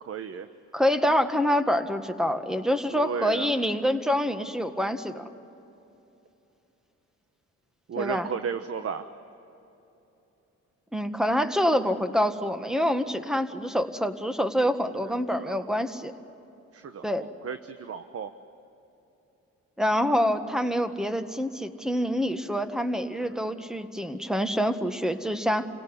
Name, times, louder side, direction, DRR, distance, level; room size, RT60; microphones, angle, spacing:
voice 1, 0.1-0.5 2.9-3.5 7.9-9.0 15.3-15.6 16.7-17.0 17.4-18.3 23.2-23.4, right 6 dB, 50° right, 9 dB, 1.1 m, -34 dB
voice 2, 0.7-5.2 7.9-8.3 10.9-16.1 17.0-17.3 19.8-25.7, equal, ahead, 8 dB, 1.7 m, -26 dB
29.5 x 17.5 x 9.9 m, 3.0 s
cardioid pair, 90°, 30 cm